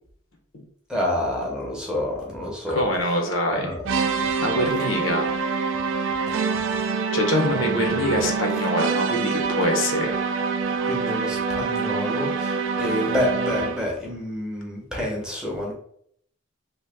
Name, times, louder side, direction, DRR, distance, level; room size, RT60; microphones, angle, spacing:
voice 1, 0.9-2.9 3.5-4.6 6.8-6.9 7.5-8.0 10.8-15.7, left 1 dB, 5° right, -3 dB, 0.6 m, -29 dB
voice 2, 2.7-3.8 4.4-5.3 7.1-10.2, left 1 dB, 70° left, 2 dB, 0.7 m, -24 dB
sound 1, 3.8-14.0, right 5 dB, 65° right, 0.4 m, -25 dB
2.9 x 2.1 x 3.3 m, 0.65 s
head